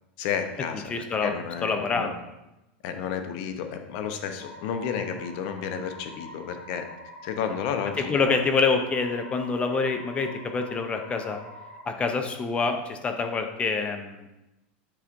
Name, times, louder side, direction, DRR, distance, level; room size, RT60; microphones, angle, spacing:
voice 1, 0.2-2.1 2.8-6.9 7.2-8.4, left 7 dB, 55° left, 7 dB, 0.7 m, -32 dB
voice 2, 0.9-1.3 1.6-2.1 8.0-11.4 11.9-14.3, left 4 dB, 20° left, 6 dB, 0.5 m, -26 dB
sound 1, 4.4-11.8, left 1 dB, 75° left, 1.3 m, -45 dB
8.6 x 4.8 x 2.6 m, 0.95 s
supercardioid pair, 140°, 6 cm